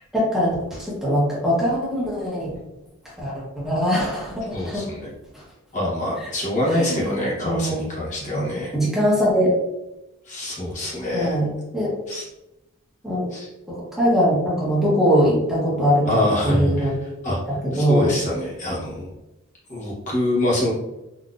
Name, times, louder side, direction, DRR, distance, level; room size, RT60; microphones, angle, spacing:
voice 1, 0.1-2.5 3.2-4.8 6.7-7.8 8.3-8.4 8.7-9.5 11.1-11.9 13.0-13.3 13.7-16.9 17.5-18.1, equal, ahead, -7 dB, 0.9 m, -22 dB
voice 2, 4.5-5.1 5.7-8.7 10.2-11.4 12.1-12.3 13.3-13.5 16.0-17.4 17.7-19.1 19.7-20.7, left 1 dB, 35° left, -6 dB, 0.8 m, -25 dB
3.9 x 2.6 x 2.3 m, 0.96 s
head